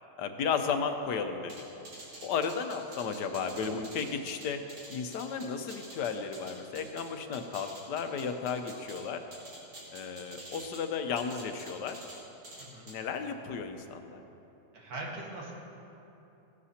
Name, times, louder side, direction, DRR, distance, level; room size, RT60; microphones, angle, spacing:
voice 1, 0.2-1.5 2.2-4.6 4.9-9.2 9.9-12.0 12.9-14.2, left 6 dB, 80° left, 7 dB, 1.3 m, -34 dB
sound 1, 1.5-7.1 7.3-9.0 9.3-10.8 11.2-12.2 12.4-12.9, right 1 dB, 70° right, 2.9 m, -47 dB
voice 2, 12.6-12.9 14.7-15.5, right 2 dB, 90° right, -3 dB, 2.3 m, -41 dB
16.0 x 11.5 x 2.9 m, 3.0 s
omnidirectional pair, 1.8 m